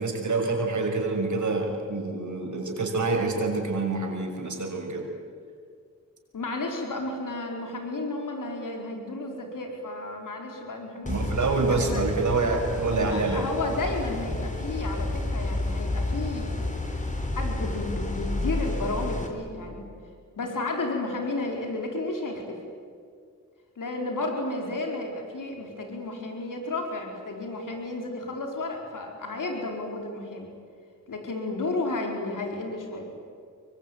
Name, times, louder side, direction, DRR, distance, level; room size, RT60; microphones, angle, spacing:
voice 1, 0.0-5.1 11.1-13.5, right 3 dB, 65° right, 2 dB, 6.2 m, -27 dB
voice 2, 6.3-12.1 13.0-16.7 17.4-19.9 20.4-22.6 23.8-30.5 31.1-33.1, left 2 dB, 80° left, 2 dB, 4.7 m, -32 dB
sound 1, 11.1-19.3, left 1 dB, 25° left, 4.2 m, -30 dB
24.0 x 23.0 x 9.3 m, 2.2 s
cardioid pair, 55°, 32 cm